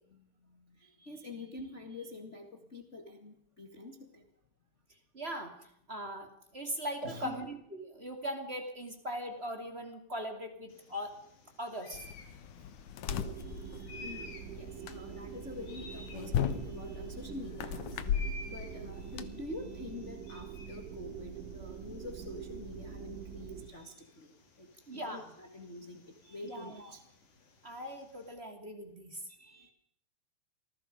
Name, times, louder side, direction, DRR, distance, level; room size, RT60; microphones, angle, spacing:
voice 1, 0.1-4.2 7.0-7.4 13.4-24.7 24.9-27.0 29.3-29.7, left 2 dB, 45° left, 5 dB, 0.8 m, -46 dB
voice 2, 5.1-11.1 11.6-12.0 24.9-25.3 26.4-26.9 27.6-29.2, equal, 20° right, 5 dB, 1.6 m, -40 dB
sound 1, 10.7-28.3, left 2 dB, 65° left, 6.4 m, -54 dB
sound 2, 11.9-19.3, left 8 dB, 90° left, 1.7 m, -38 dB
sound 3, 13.1-23.7, right 8 dB, 85° right, 4.2 m, -45 dB
27.5 x 20.0 x 5.3 m, 0.72 s
omnidirectional pair, 5.4 m